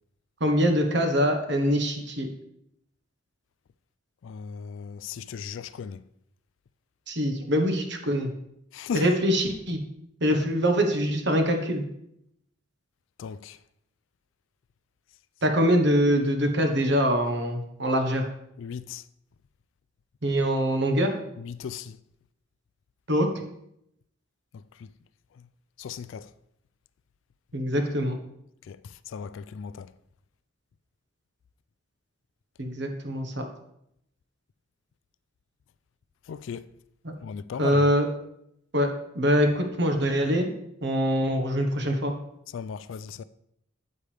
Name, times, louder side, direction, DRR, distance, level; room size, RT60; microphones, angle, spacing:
voice 1, 0.4-2.3 7.1-8.3 8.9-9.8 10.2-11.8 15.4-18.3 20.2-21.2 23.1-23.3 27.5-28.1 32.6-33.4 37.0-37.1 37.6-38.1 38.7-40.5 40.8-42.1, equal, 60° right, 1.3 m, -24 dB
voice 2, 4.2-6.0 8.7-9.1 13.2-13.6 18.6-19.0 21.4-22.0 24.8-24.9 25.8-26.3 28.7-29.9 36.3-36.7 37.2-37.9 42.5-43.2, left 6 dB, 70° left, 0.3 m, -36 dB
8.8 x 8.2 x 3.4 m
head